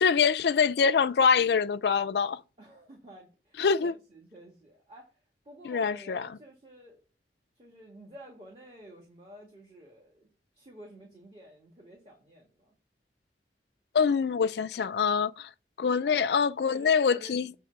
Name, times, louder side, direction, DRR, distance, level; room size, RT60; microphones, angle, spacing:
voice 1, 0.0-2.4 3.6-3.9 5.6-6.3 13.9-15.5 15.8-17.5, left 6 dB, 70° left, 0.4 m, -25 dB
voice 2, 2.6-5.1 5.4-7.0 7.6-10.3 10.5-12.7 16.1-16.2 16.6-17.6, equal, 30° right, 1.9 m, -51 dB
7.9 x 3.5 x 6.4 m
head